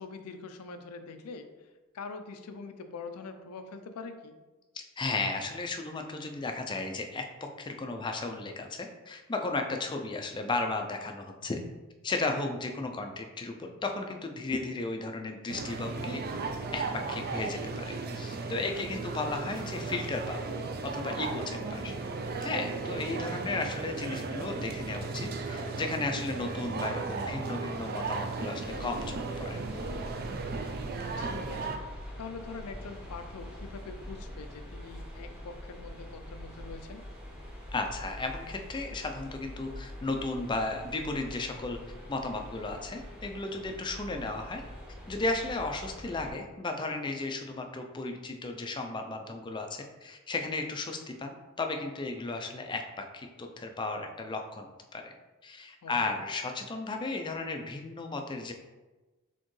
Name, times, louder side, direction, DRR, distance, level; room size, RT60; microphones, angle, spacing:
voice 1, 0.0-1.5 1.9-4.4 18.7-19.1 31.2-31.8 32.2-37.0 55.8-56.2, left 4 dB, 90° left, 8 dB, 0.5 m, -44 dB
voice 2, 4.7-11.6 12.0-16.2 16.7-20.6 20.9-21.9 22.4-29.6 37.7-41.8 42.1-44.6 45.1-54.7 54.9-55.1 55.4-58.5, left 3 dB, 20° left, 4 dB, 0.4 m, -35 dB
sound 1, 15.5-31.8, right 3 dB, 45° right, 0.4 m, -35 dB
sound 2, 28.6-46.3, equal, 5° right, 0.8 m, -44 dB
4.3 x 3.7 x 3.1 m, 1.2 s
head